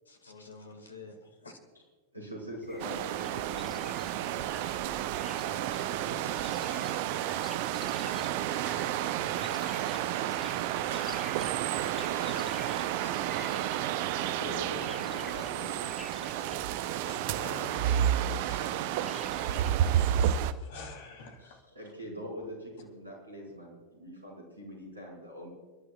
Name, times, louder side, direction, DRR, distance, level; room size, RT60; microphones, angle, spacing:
voice 1, 0.1-1.6 5.7-6.8 8.4-8.5 10.9-11.0, left 3 dB, 75° left, 6 dB, 2.1 m, -49 dB
voice 2, 2.1-3.9 13.3-13.5 14.4-15.7 17.8-17.9 21.4-25.5, equal, 80° right, 0 dB, 5.3 m, -43 dB
sound 1, 2.6-20.6, left 3 dB, 10° left, 0.8 m, -50 dB
sound 2, 2.8-20.5, right 11 dB, 50° right, 0.6 m, -31 dB
sound 3, 9.3-19.3, left 2 dB, 35° left, 4.2 m, -58 dB
voice 3, 11.8-13.3 14.0-14.3 16.4-16.7 17.0-18.0 18.4-19.2 19.9-21.6, left 4 dB, 50° left, 5 dB, 3.3 m, -49 dB
30.0 x 11.5 x 2.4 m, 1.4 s
figure-of-eight pair, 90°, 0 cm